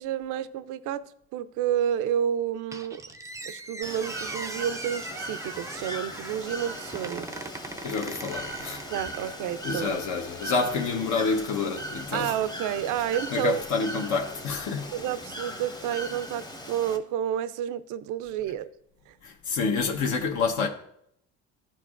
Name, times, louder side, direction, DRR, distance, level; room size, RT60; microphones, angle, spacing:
voice 1, 0.0-3.0 3.4-7.3 8.9-9.9 12.1-13.6 14.9-18.7 19.1-19.2, right 10 dB, 70° right, 0.5 m, -30 dB
Squeak, 2.7-9.6, right 2 dB, 10° right, 0.4 m, -40 dB
Bird / Water, 3.8-17.0, equal, 10° left, 0.8 m, -39 dB
voice 2, 7.8-8.8 9.6-12.4 13.3-14.9 19.2-20.7, left 4 dB, 65° left, 0.9 m, -28 dB
12.0 x 4.6 x 2.4 m
cardioid pair, 100°, 32 cm